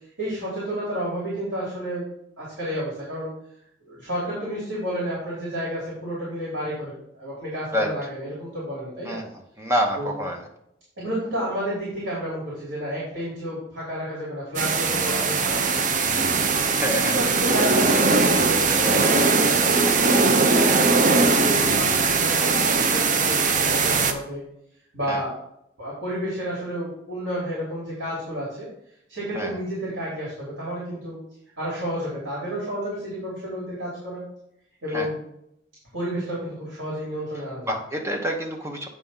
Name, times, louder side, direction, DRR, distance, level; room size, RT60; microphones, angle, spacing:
voice 1, 0.2-2.0 2.4-3.3 3.8-9.2 10.0-10.1 11.0-16.2 16.9-19.5 20.2-24.4 24.9-25.3 25.8-28.7 29.1-31.2 31.6-34.2 34.8-35.2 35.9-37.7, equal, 75° right, -6 dB, 3.1 m, -31 dB
voice 2, 9.6-10.4 16.6-17.3 19.8-20.0 20.3-20.5 25.1-25.2 29.3-29.6 34.9-35.1 37.7-38.9, equal, 15° right, 2 dB, 1.0 m, -27 dB
sound 1, 14.6-24.1, right 4 dB, 40° right, 0.6 m, -20 dB
8.4 x 3.6 x 5.6 m, 0.76 s
head